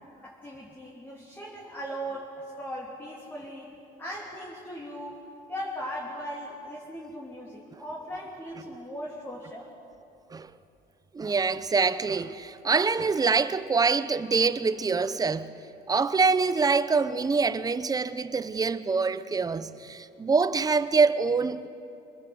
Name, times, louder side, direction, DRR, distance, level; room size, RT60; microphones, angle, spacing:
voice 1, 0.2-3.7 4.0-9.7, equal, 10° left, 3.3 m, -38 dB
voice 2, 11.1-15.5 15.9-21.7, right 4 dB, 20° right, 0.8 m, -25 dB
25.0 x 21.0 x 7.9 m
cardioid pair, 110°, 17 cm